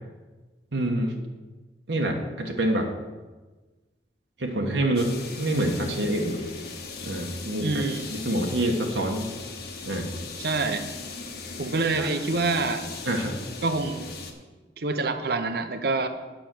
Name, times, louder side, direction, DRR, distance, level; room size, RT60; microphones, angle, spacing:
voice 1, 0.7-1.1 1.9-2.9 4.4-6.4 7.0-9.3 9.9-10.1 12.0-12.1 13.1-13.3, right 1 dB, 85° right, 1 dB, 1.3 m, -26 dB
sound 1, 5.0-14.3, left 4 dB, 60° left, 1.3 m, -38 dB
voice 2, 7.6-8.1 10.4-10.9 11.6-12.9 13.6-14.2 14.8-16.1, right 3 dB, 60° right, 9 dB, 0.8 m, -26 dB
9.1 x 5.9 x 7.6 m, 1.3 s
head